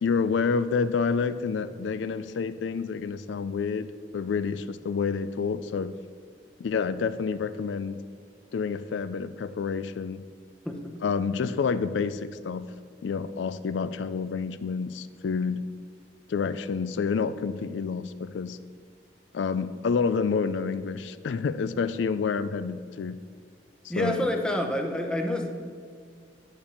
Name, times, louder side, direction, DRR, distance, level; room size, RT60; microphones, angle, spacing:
voice 1, 0.0-6.0 6.6-8.0 8.5-10.2 11.0-12.7 13.0-15.7 16.3-18.6 19.3-23.2 23.8-24.2, left 5 dB, 75° left, 13 dB, 0.4 m, -28 dB
voice 2, 23.9-25.5, left 1 dB, 5° left, 3 dB, 0.8 m, -27 dB
9.9 x 5.2 x 7.1 m, 2.1 s
head